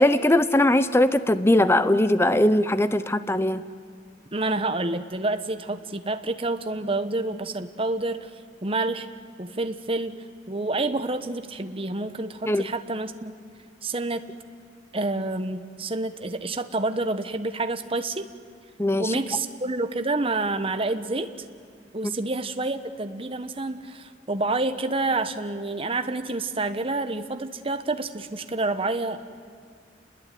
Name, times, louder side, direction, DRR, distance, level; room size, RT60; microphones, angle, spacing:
voice 1, 0.0-3.6 12.5-12.7 18.8-19.1 22.0-22.1, left 1 dB, 15° left, 13 dB, 0.8 m, -20 dB
voice 2, 4.3-8.3 8.6-9.1 9.4-13.3 13.8-14.3 14.9-18.3 19.0-21.3 21.9-29.2, right 2 dB, 30° right, 9 dB, 1.2 m, -28 dB
29.0 x 21.0 x 9.4 m, 2.2 s
head